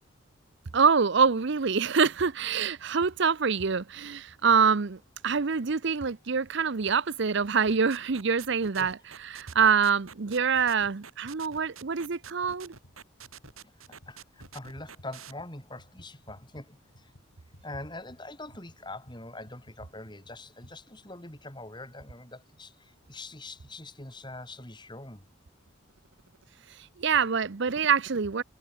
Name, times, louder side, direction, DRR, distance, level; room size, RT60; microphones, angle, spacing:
voice 1, 0.7-9.0 9.2-12.7 27.0-28.4, right 6 dB, 60° right, 0.7 m, -25 dB
sound 1, 7.7-15.3, right 7 dB, 85° right, 6.0 m, -47 dB
sound 2, 10.1-15.1 15.4-20.8, equal, 85° left, 6.0 m, -58 dB
voice 2, 13.9-17.1 17.6-25.2, left 2 dB, 20° left, 4.7 m, -43 dB
head